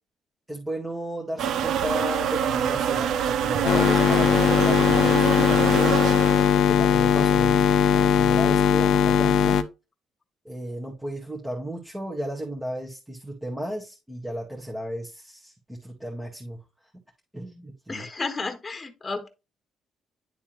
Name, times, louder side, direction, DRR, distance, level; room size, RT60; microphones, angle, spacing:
voice 1, 0.5-6.0 6.6-9.6 10.4-16.6 17.3-18.0, equal, 10° right, 1.6 m, -34 dB
sound 1, 1.4-6.6, right 9 dB, 75° right, 0.4 m, -26 dB
sound 2, 3.6-9.6, left 8 dB, 75° left, 0.6 m, -19 dB
voice 2, 17.9-19.3, left 3 dB, 30° left, 1.4 m, -32 dB
10.5 x 3.5 x 3.0 m
cardioid pair, 90°, 0 cm